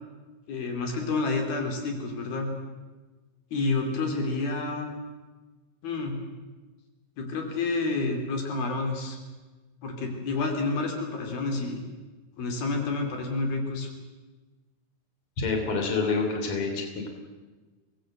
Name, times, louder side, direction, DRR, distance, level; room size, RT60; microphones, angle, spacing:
voice 1, 0.5-2.5 3.5-4.9 5.8-6.2 7.2-9.2 9.8-11.8 12.4-13.9, left 3 dB, 75° left, 3 dB, 4.7 m, -29 dB
voice 2, 15.4-17.1, left 4 dB, 35° left, 3 dB, 3.8 m, -27 dB
24.0 x 19.0 x 7.8 m, 1.3 s
omnidirectional pair, 4.3 m